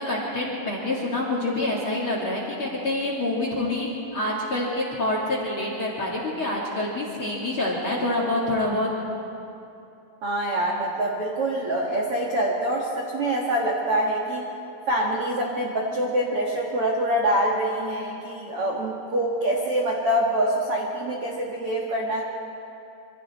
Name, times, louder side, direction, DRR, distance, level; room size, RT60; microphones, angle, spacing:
voice 1, 0.0-8.9, left 1 dB, 40° left, -3 dB, 2.0 m, -27 dB
voice 2, 10.2-14.5 14.8-22.2, right 1 dB, 80° right, -2 dB, 1.3 m, -25 dB
26.5 x 24.5 x 4.3 m, 2.8 s
omnidirectional pair, 5.6 m